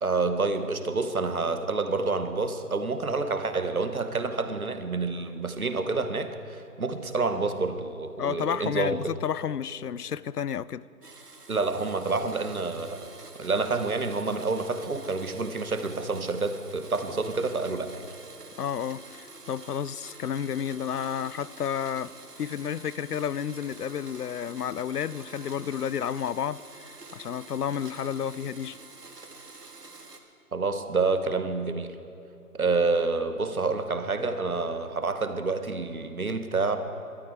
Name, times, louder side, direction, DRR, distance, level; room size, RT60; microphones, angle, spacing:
voice 1, 0.0-9.0 11.5-13.1 13.4-18.0 30.5-32.0 32.5-36.8, right 3 dB, 65° right, 1.3 m, -28 dB
voice 2, 8.2-10.8 18.6-28.8, left 8 dB, 75° left, 0.5 m, -31 dB
Domestic sounds home sounds, 11.0-30.2, right 3 dB, 85° right, 1.7 m, -47 dB
17.5 x 12.5 x 4.6 m
figure-of-eight pair, 170°, 46 cm